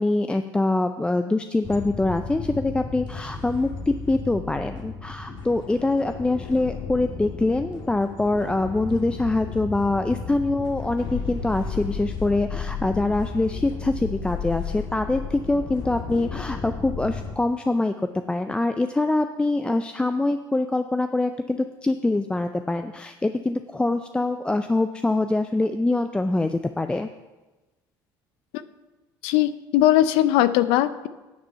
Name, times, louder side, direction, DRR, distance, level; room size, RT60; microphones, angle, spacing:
voice 1, 0.0-17.9 18.3-27.1, left 2 dB, 10° left, 8 dB, 0.4 m, -24 dB
sound 1, 1.6-17.3, left 5 dB, 55° left, 1.6 m, -34 dB
voice 2, 29.2-31.1, left 13 dB, 80° left, 14 dB, 0.5 m, -19 dB
9.3 x 7.3 x 5.6 m, 1.1 s
supercardioid pair, 95°, 9 cm